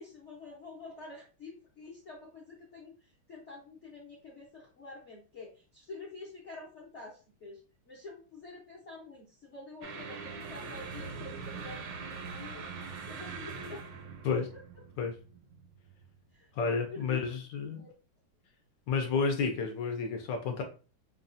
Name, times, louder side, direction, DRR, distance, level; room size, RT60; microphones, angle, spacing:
voice 1, 0.0-13.9 14.3-14.6 16.3-16.5 16.9-17.3 17.8-17.9, left 3 dB, 55° left, -5 dB, 0.8 m, -48 dB
sound 1, 9.8-16.3, right 4 dB, 70° right, 1.2 m, -43 dB
voice 2, 16.5-17.8 18.9-20.6, left 5 dB, 75° left, 4 dB, 1.1 m, -31 dB
5.2 x 2.3 x 2.6 m, 0.35 s
omnidirectional pair, 2.4 m